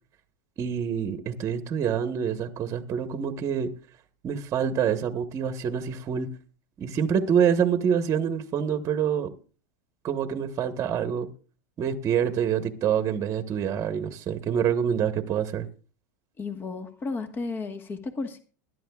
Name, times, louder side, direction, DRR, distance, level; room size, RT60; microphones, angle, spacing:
voice 1, 0.6-3.7 4.2-6.3 6.8-9.3 10.0-11.3 11.8-15.7, right 8 dB, 30° right, 1.2 m, -26 dB
voice 2, 16.4-18.4, left 3 dB, 20° left, 1.4 m, -33 dB
21.0 x 11.5 x 2.4 m
supercardioid pair, 130°, 10 cm